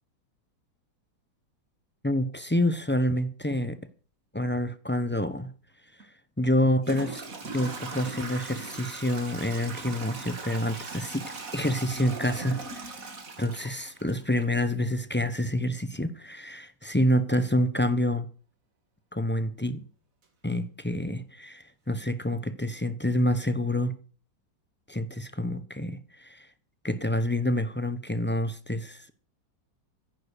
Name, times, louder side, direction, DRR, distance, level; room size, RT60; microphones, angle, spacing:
voice 1, 2.0-3.8 4.3-5.5 6.4-7.2 7.5-11.2 11.5-12.9 13.4-18.3 19.1-19.8 20.4-24.0 24.9-26.5 26.8-29.1, left 1 dB, 15° left, 0.4 m, -27 dB
Toilet flush / Trickle dribble, 6.0-6.1 6.8-14.6, right 3 dB, 45° right, 2.4 m, -39 dB
14.5 x 10.5 x 6.6 m
omnidirectional pair, 2.1 m